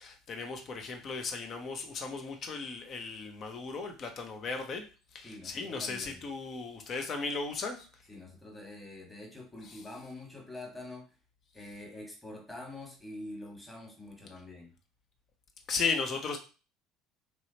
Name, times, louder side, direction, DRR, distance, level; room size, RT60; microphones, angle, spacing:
voice 1, 0.0-4.9 5.1-7.9 15.7-16.4, left 4 dB, 40° left, 5 dB, 0.7 m, -36 dB
voice 2, 5.2-6.2 8.1-11.0 11.5-14.7, left 2 dB, 10° left, 0 dB, 1.4 m, -45 dB
3.2 x 2.8 x 2.8 m, 0.33 s
figure-of-eight pair, 60°, 0 cm